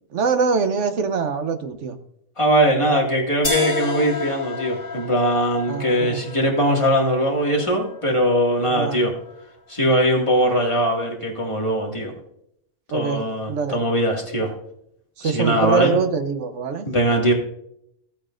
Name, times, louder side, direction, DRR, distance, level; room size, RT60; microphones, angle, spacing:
voice 1, 0.1-1.9 5.7-6.2 8.7-9.1 12.9-13.2 13.5-13.8 15.2-16.9, right 5 dB, 65° right, 8 dB, 1.2 m, -24 dB
voice 2, 2.4-9.1 9.7-12.1 12.9-14.5 15.2-15.9 16.8-17.3, equal, 20° left, -1 dB, 2.1 m, -20 dB
sound 1, 3.4-9.4, left 3 dB, 60° left, 3.0 m, -32 dB
14.5 x 8.6 x 2.5 m, 0.75 s
omnidirectional pair, 1.4 m